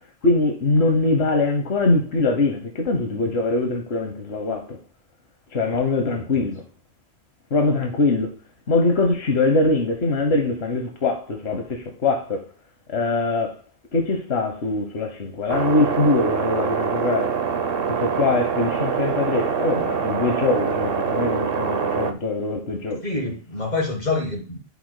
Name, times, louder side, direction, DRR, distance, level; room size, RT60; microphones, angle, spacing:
voice 1, 0.2-4.8 5.5-6.6 7.5-8.3 8.7-12.5 12.9-13.5 13.9-17.4 17.9-23.0, left 3 dB, 80° left, 1.2 m, -22 dB
voice 2, 6.0-6.4 23.0-24.7, left 3 dB, 45° left, 3.4 m, -27 dB
sound 1, 15.5-22.1, right 7 dB, 65° right, 0.9 m, -24 dB
11.5 x 4.9 x 2.2 m
omnidirectional pair, 1.1 m